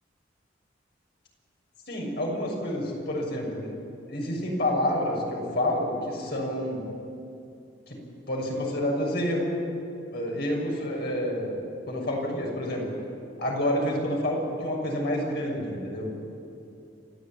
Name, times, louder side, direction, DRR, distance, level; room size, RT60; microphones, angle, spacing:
voice 1, 1.9-3.7 4.1-6.8 7.9-8.0 8.3-9.6 10.1-12.9 13.4-16.1, left 1 dB, 60° left, -1 dB, 6.7 m, -28 dB
29.5 x 13.0 x 9.2 m, 2.6 s
head